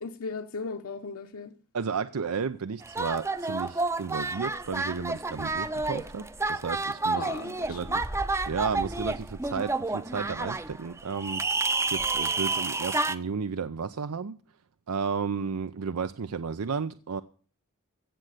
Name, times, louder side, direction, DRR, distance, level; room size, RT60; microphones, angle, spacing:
voice 1, 0.0-1.5 7.1-7.8, left 4 dB, 70° left, 1.0 m, -37 dB
voice 2, 1.7-7.3 7.7-7.9 8.5-14.4 14.9-17.2, right 5 dB, 80° right, 0.6 m, -33 dB
sound 1, 2.8-13.2, right 3 dB, 10° right, 0.6 m, -30 dB
15.5 x 7.5 x 6.6 m
head